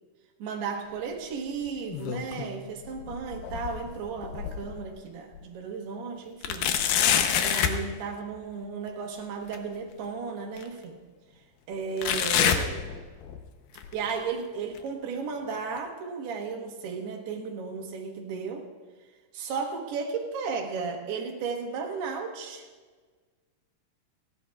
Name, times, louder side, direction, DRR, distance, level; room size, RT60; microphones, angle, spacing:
voice 1, 0.4-6.7 7.4-11.0 11.7-13.0 13.9-18.7 19.3-22.7, right 5 dB, 85° right, 2 dB, 3.5 m, -34 dB
sound 1, 1.7-2.6 3.0-4.9 5.4-5.5 6.4-7.8 9.5-9.6 10.6-10.7 12.0-13.4 13.8-14.1 14.8-14.9 15.8-15.9, left 8 dB, 75° left, 2.4 m, -27 dB
30.0 x 11.0 x 2.4 m, 1.4 s
omnidirectional pair, 4.5 m